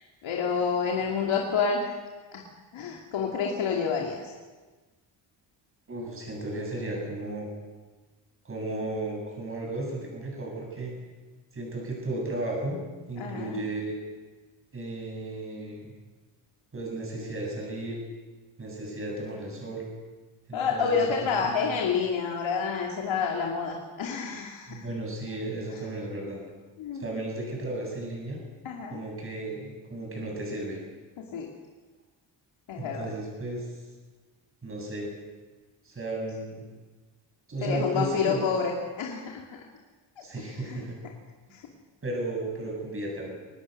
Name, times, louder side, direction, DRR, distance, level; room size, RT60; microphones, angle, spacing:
voice 1, 0.0-2.0 2.3-2.4 2.7-4.3 13.2-13.7 20.5-24.8 26.8-27.1 28.6-29.0 31.3-31.5 32.7-33.1 37.6-39.6 40.2-40.3 40.7-40.8 41.5-41.7, left 5 dB, 85° left, -1 dB, 2.9 m, -29 dB
voice 2, 5.9-7.5 8.4-10.9 11.5-12.8 13.1-13.9 14.7-15.9 16.7-18.0 18.6-19.9 20.5-21.5 24.7-26.4 26.9-28.4 28.9-30.8 32.8-33.7 34.6-35.1 35.8-36.6 37.5-38.4 40.2-41.0 42.0-43.3, right 2 dB, 30° right, -1 dB, 7.9 m, -34 dB
24.5 x 19.5 x 6.8 m, 1.3 s
wide cardioid pair, 150°, 45 cm